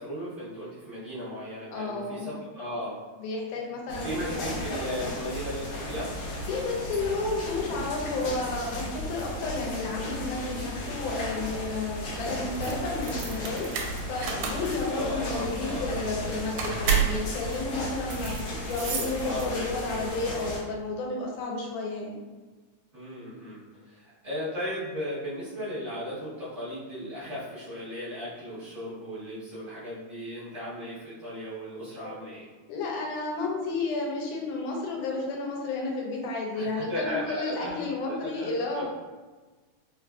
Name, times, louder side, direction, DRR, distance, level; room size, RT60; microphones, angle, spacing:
voice 1, 0.0-3.0 3.9-6.1 14.9-15.9 19.2-19.8 22.9-32.5 36.5-38.8, equal, 40° right, -15 dB, 1.5 m, -36 dB
voice 2, 1.7-2.3 3.2-4.6 6.5-22.2 32.0-32.2 32.7-38.8, left 3 dB, 85° left, -1 dB, 2.2 m, -32 dB
sound 1, 3.9-20.6, left 1 dB, 65° left, 1.7 m, -35 dB
sound 2, 12.5-19.8, right 6 dB, 85° right, 2.0 m, -31 dB
4.7 x 2.4 x 2.3 m, 1.3 s
omnidirectional pair, 3.5 m